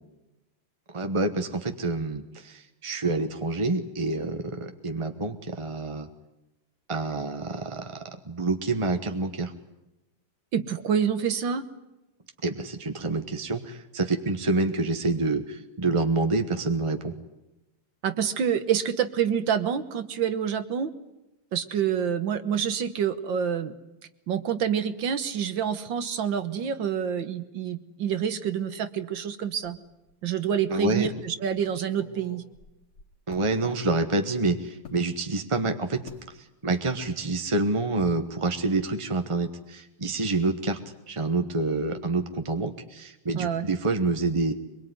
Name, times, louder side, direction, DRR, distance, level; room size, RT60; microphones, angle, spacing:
voice 1, 0.9-6.1 6.9-9.5 12.4-17.1 30.7-31.1 33.3-36.0 36.4-40.8 41.1-44.5, right 3 dB, 25° right, 7 dB, 0.7 m, -27 dB
voice 2, 10.5-11.6 18.0-20.9 21.5-23.7 24.3-29.8 30.2-32.4 33.6-33.7 43.4-43.7, right 8 dB, 60° right, 11 dB, 1.8 m, -27 dB
sound 1, 29.6-30.2 30.6-30.7 31.5-33.5 34.8-35.1 36.1-36.3 36.7-37.0 37.2-37.4, left 6 dB, 85° left, 3.3 m, -49 dB
23.5 x 22.5 x 9.5 m, 0.97 s
omnidirectional pair, 2.4 m